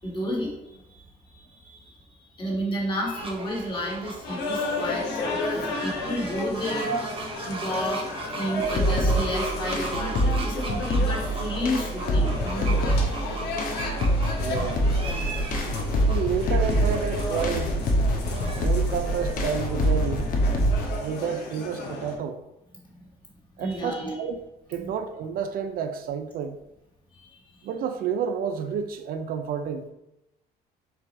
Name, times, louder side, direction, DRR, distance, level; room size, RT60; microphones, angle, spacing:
voice 1, 0.0-2.0 2.3-8.0 8.3-13.8 23.6-24.2 24.8-24.9 27.1-27.7, equal, 30° left, -3 dB, 1.5 m, -32 dB
sound 1, 3.1-18.9, right 3 dB, 30° right, 0.7 m, -39 dB
sound 2, 4.2-22.2, left 2 dB, 80° left, 0.9 m, -33 dB
sound 3, 8.6-21.0, equal, 55° left, 0.7 m, -25 dB
voice 2, 14.4-14.9 16.1-17.7 18.6-20.3 21.0-22.4 23.6-24.4 24.7-26.6 27.6-29.9, right 7 dB, 60° right, 8 dB, 0.4 m, -30 dB
4.7 x 2.4 x 4.1 m, 0.89 s
cardioid pair, 110°, 17 cm